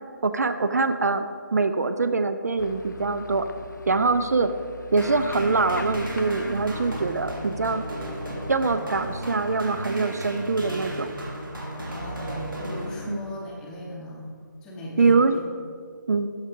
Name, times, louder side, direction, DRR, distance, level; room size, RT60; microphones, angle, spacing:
voice 1, 0.2-3.5 3.9-4.5 4.9-7.8 8.5-11.1 13.1-13.2 15.0-15.4 16.1-16.3, right 3 dB, 55° right, 10 dB, 0.4 m, -23 dB
sound 1, 2.6-8.7, left 4 dB, 65° left, 0.4 m, -41 dB
sound 2, 5.0-13.5, right 1 dB, 85° right, 1.9 m, -34 dB
voice 2, 11.8-14.3 14.6-15.4, left 1 dB, 5° left, -3 dB, 0.7 m, -37 dB
13.0 x 4.6 x 3.5 m, 2.2 s
figure-of-eight pair, 155°, 11 cm